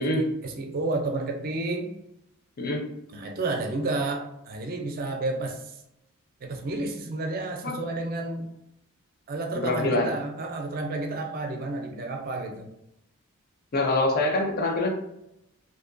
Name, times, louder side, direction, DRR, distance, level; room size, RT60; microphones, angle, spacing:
voice 1, 0.0-1.9 3.1-5.8 6.4-8.5 9.3-12.7, right 2 dB, 40° right, 3 dB, 0.4 m, -31 dB
voice 2, 9.6-10.1 13.7-14.9, left 2 dB, 45° left, 1 dB, 0.5 m, -24 dB
2.6 x 2.1 x 2.5 m, 0.82 s
head